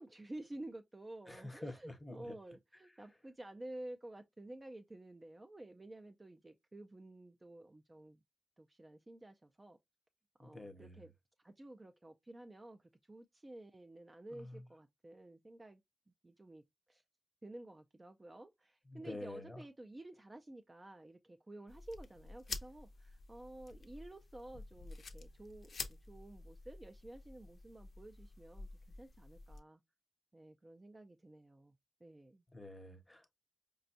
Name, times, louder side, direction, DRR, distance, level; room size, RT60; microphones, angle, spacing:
voice 1, 0.0-8.2 8.6-9.8 10.4-11.1 11.4-15.8 16.2-16.6 16.9-17.0 17.4-28.7 29.0-29.8 30.3-31.7 32.0-32.4, right 1 dB, 20° right, 0.4 m, -52 dB
voice 2, 1.3-2.4 10.4-11.0 14.3-14.6 18.9-19.6 32.5-33.3, left 2 dB, 10° left, 0.8 m, -48 dB
sound 1, 21.7-29.6, left 3 dB, 55° left, 0.5 m, -50 dB
5.0 x 2.3 x 2.6 m
wide cardioid pair, 125°, 0 cm